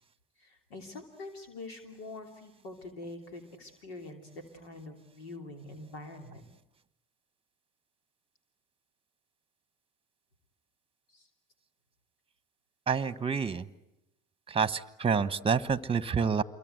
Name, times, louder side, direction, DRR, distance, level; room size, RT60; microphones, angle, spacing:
voice 1, 0.4-6.5 11.1-11.3, left 2 dB, 90° left, 5 dB, 3.2 m, -45 dB
voice 2, 12.9-13.7 14.5-16.4, right 6 dB, 20° right, 16 dB, 1.2 m, -28 dB
28.0 x 23.0 x 8.0 m, 0.85 s
hypercardioid pair, 85°, 29 cm